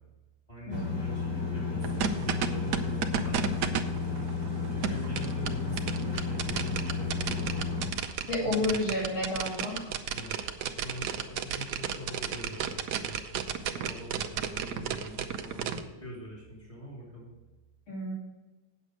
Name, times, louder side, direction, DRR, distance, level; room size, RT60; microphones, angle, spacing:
voice 1, 0.5-3.8 4.6-7.9 8.4-8.9 10.1-13.2 13.5-17.3, equal, 15° left, -5 dB, 3.6 m, -43 dB
sound 1, 0.7-7.9, left 4 dB, 30° left, 0.4 m, -32 dB
sound 2, 1.8-15.8, right 8 dB, 65° right, 1.1 m, -33 dB
voice 2, 8.3-9.9 17.9-18.1, left 2 dB, 70° left, -5 dB, 3.6 m, -31 dB
8.9 x 7.3 x 5.1 m, 1.1 s
omnidirectional pair, 2.3 m